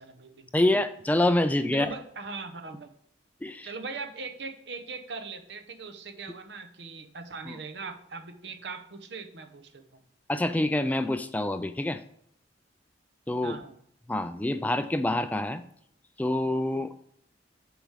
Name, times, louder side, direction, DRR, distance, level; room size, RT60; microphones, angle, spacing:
voice 1, 0.0-0.5 1.7-2.9 3.6-10.0 13.4-13.7, right 4 dB, 70° right, 7 dB, 0.9 m, -40 dB
voice 2, 0.5-1.9 3.4-3.7 7.5-7.6 10.3-12.0 13.3-13.6 14.1-15.6 16.2-17.0, left 1 dB, 10° left, 10 dB, 0.3 m, -26 dB
7.0 x 4.8 x 5.6 m, 0.68 s
head